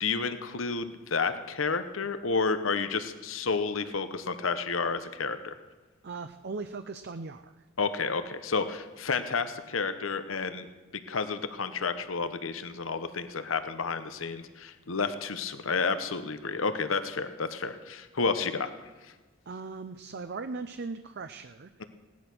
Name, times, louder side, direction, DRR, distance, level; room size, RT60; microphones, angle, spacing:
voice 1, 0.0-5.5 7.8-10.7 11.1-18.7 19.0-19.1, left 4 dB, 90° left, 10 dB, 1.0 m, -31 dB
voice 2, 6.0-7.5 19.5-21.7, right 4 dB, 55° right, 9 dB, 0.6 m, -38 dB
17.0 x 11.0 x 6.1 m, 1.3 s
head